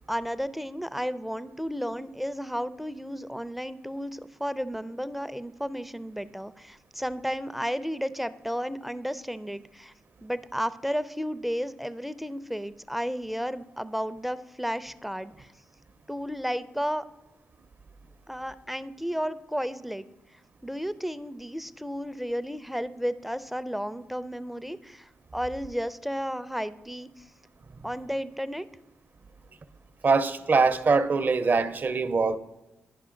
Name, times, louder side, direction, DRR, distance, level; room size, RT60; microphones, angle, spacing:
voice 1, 0.1-9.9 10.2-15.5 16.1-17.1 18.3-20.0 20.6-27.2 27.8-28.7, equal, 5° right, 0.4 m, -33 dB
voice 2, 30.0-32.4, right 4 dB, 45° right, 0.6 m, -23 dB
11.0 x 5.5 x 3.8 m
cardioid pair, 55°, 4 cm